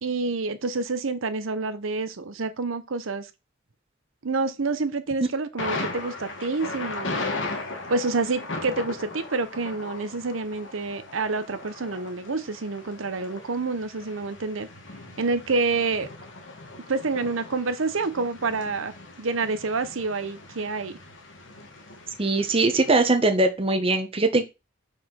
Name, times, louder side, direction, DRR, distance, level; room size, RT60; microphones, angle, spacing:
voice 1, 0.0-3.3 4.2-7.3 7.9-14.7 15.2-16.1 16.9-21.0, right 3 dB, 90° right, 0.8 m, -28 dB
Thunder, 5.6-23.0, left 3 dB, 65° left, 1.6 m, -38 dB
voice 2, 22.2-24.4, right 2 dB, 30° right, 1.0 m, -21 dB
4.9 x 4.3 x 5.8 m
head